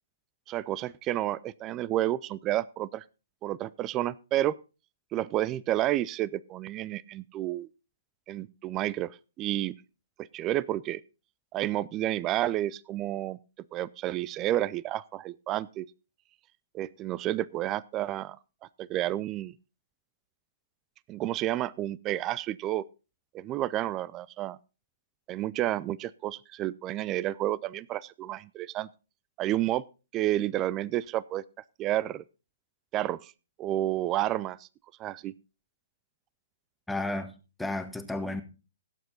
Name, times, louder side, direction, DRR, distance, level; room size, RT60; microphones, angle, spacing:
voice 1, 0.5-3.0 3.4-4.5 5.1-7.7 8.3-9.7 10.2-11.0 11.5-13.4 13.7-15.9 16.7-18.4 18.8-19.5 21.1-22.9 23.3-24.6 25.3-28.9 29.4-29.8 30.1-31.4 31.8-32.2 32.9-33.3 33.6-34.7 35.0-35.3, right 14 dB, 25° right, 0.5 m, -30 dB
voice 2, 36.9-38.4, left 2 dB, 5° left, 1.4 m, -33 dB
17.0 x 8.0 x 4.0 m
figure-of-eight pair, 125°, 0 cm